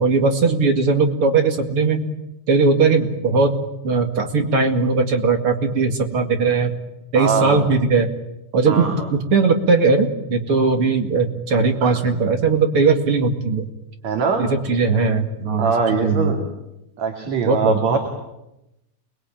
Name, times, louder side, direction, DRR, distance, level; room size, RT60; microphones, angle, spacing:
voice 1, 0.0-2.1 2.5-3.5 3.8-6.7 7.1-8.1 8.5-8.9 9.3-13.7 14.4-16.3 17.4-18.0, right 4 dB, 50° right, 5 dB, 2.8 m, -19 dB
voice 2, 7.1-7.7 8.7-9.1 11.8-12.0 14.0-14.5 15.6-16.5 17.0-18.0, right 5 dB, 65° right, 3 dB, 3.7 m, -22 dB
29.0 x 21.0 x 9.0 m, 0.92 s
omnidirectional pair, 3.4 m